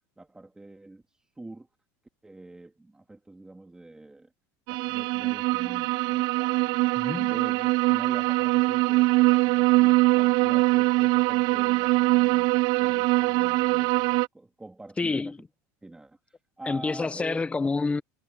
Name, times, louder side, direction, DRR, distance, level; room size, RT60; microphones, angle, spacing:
voice 1, 0.2-1.0 1.4-1.7 2.2-4.3 4.7-7.0 7.3-12.5 12.8-13.9 14.3-15.3 15.8-17.5, right 2 dB, 10° right, 2.9 m, -44 dB
sound 1, 4.7-14.3, right 22 dB, 60° right, 0.5 m, -23 dB
voice 2, 7.0-7.3 15.0-15.3 16.7-18.0, left 3 dB, 15° left, 0.9 m, -27 dB
supercardioid pair, 130°, 9 cm